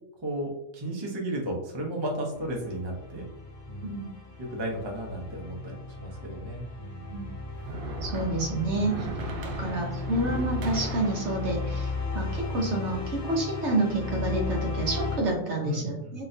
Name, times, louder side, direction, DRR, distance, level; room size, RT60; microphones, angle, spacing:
voice 1, 0.2-3.2 3.7-3.9 4.5-7.1 8.5-9.1 15.6-16.3, right 1 dB, 40° right, -1 dB, 0.4 m, -34 dB
sound 1, 2.3-15.2, left 3 dB, 55° left, 1.1 m, -35 dB
sound 2, 7.1-13.3, right 3 dB, 85° right, 1.2 m, -39 dB
voice 2, 8.0-9.1 9.4-16.3, right 2 dB, 55° right, 0 dB, 0.8 m, -29 dB
3.8 x 2.8 x 2.6 m, 0.83 s
omnidirectional pair, 1.7 m